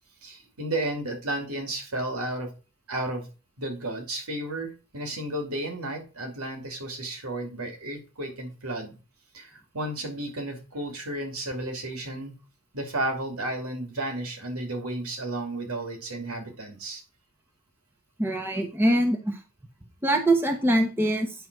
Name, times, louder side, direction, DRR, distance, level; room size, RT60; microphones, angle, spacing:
voice 1, 0.2-2.5 2.9-3.3 3.6-9.0 9.3-12.3 12.7-17.0, right 1 dB, 80° right, 3 dB, 2.5 m, -33 dB
voice 2, 18.2-19.4 20.0-21.3, right 1 dB, 10° right, 3 dB, 1.0 m, -23 dB
9.2 x 4.0 x 6.0 m, 0.33 s
head